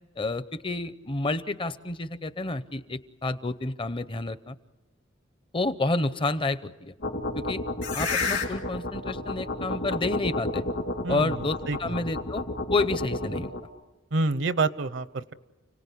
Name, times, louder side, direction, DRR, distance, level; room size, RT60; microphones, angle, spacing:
voice 1, 0.2-4.5 5.5-6.9 7.4-7.6 7.9-10.7 11.1-12.5 12.7-13.5, left 2 dB, 25° left, 14 dB, 0.7 m, -29 dB
sound 1, 7.0-13.6, left 2 dB, 60° left, 2.8 m, -30 dB
voice 2, 14.1-15.3, right 3 dB, 70° right, 15 dB, 0.8 m, -27 dB
29.5 x 18.0 x 8.4 m, 1.1 s
head